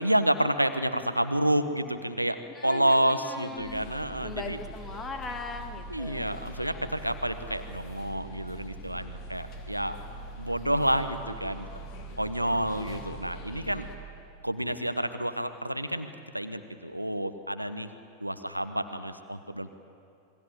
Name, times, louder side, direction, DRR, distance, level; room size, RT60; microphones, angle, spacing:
voice 1, 0.0-2.4 2.6-4.6 5.9-10.0 10.4-11.7 12.2-13.9 14.4-17.9 18.2-19.8, right 1 dB, 90° right, 10 dB, 1.2 m, -29 dB
voice 2, 2.5-3.9 4.2-6.4, left 4 dB, 20° left, 6 dB, 2.2 m, -40 dB
sound 1, 3.6-14.0, right 1 dB, 40° left, 3.6 m, -43 dB
27.5 x 21.5 x 7.9 m, 2.7 s
figure-of-eight pair, 90°, 0 cm